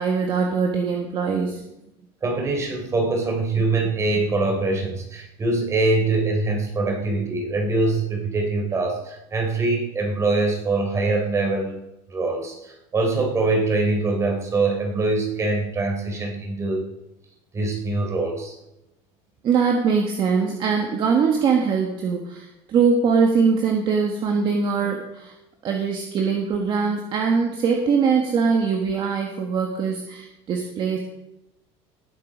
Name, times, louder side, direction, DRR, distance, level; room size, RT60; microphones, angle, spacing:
voice 1, 0.0-1.6 19.4-25.3 25.6-31.0, right 5 dB, 35° right, 2 dB, 1.5 m, -22 dB
voice 2, 2.2-11.8 12.1-16.8 17.5-18.6, right 3 dB, 20° right, 1 dB, 3.5 m, -23 dB
18.5 x 7.6 x 5.1 m, 0.89 s
cardioid pair, 155°, 14 cm